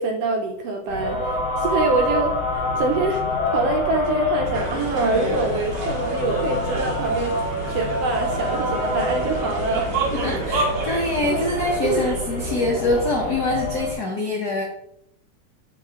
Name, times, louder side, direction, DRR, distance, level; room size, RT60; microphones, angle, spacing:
voice 1, 0.0-3.2 3.5-9.9 10.8-11.0 11.3-11.4 11.8-12.0, right 3 dB, 70° right, 2 dB, 1.5 m, -25 dB
sound 1, 0.9-13.9, left 1 dB, 45° left, 2.2 m, -27 dB
sound 2, 4.5-12.1, right 3 dB, 55° right, 1.2 m, -30 dB
sound 3, 7.8-13.0, left 2 dB, 60° left, 1.7 m, -44 dB
voice 2, 10.1-14.6, left 2 dB, 80° left, -2 dB, 0.8 m, -24 dB
5.8 x 4.8 x 3.6 m, 0.75 s
omnidirectional pair, 3.3 m